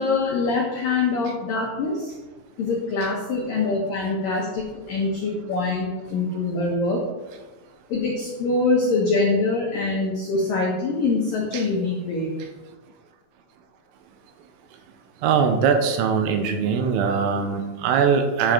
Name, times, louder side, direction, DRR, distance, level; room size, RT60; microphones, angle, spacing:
voice 1, 0.0-2.1 2.6-7.0 7.9-12.3, left 3 dB, 80° left, -2 dB, 1.9 m, -24 dB
voice 2, 15.2-18.5, right 6 dB, 85° right, 6 dB, 3.4 m, -21 dB
10.5 x 7.7 x 3.8 m, 1.2 s
omnidirectional pair, 6.0 m